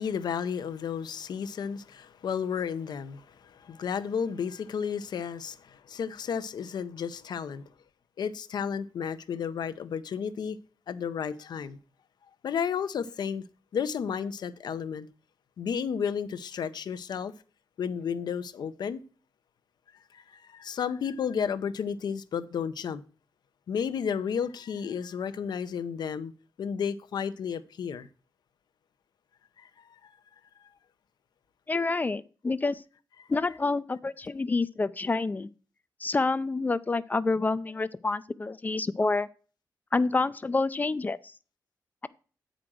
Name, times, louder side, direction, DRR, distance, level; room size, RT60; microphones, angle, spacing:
voice 1, 0.0-7.6 8.2-10.6 10.9-11.8 12.4-13.4 13.7-15.1 15.6-17.3 17.8-19.0 20.1-23.0 23.7-26.3 26.6-28.1 29.6-29.7 30.0-30.1 33.2-33.3, left 7 dB, 75° left, 0.7 m, -32 dB
voice 2, 31.7-32.8 33.3-35.5 36.0-39.3 39.9-41.2, left 3 dB, 25° left, 0.4 m, -28 dB
8.7 x 5.1 x 6.1 m
wide cardioid pair, 140°, 7 cm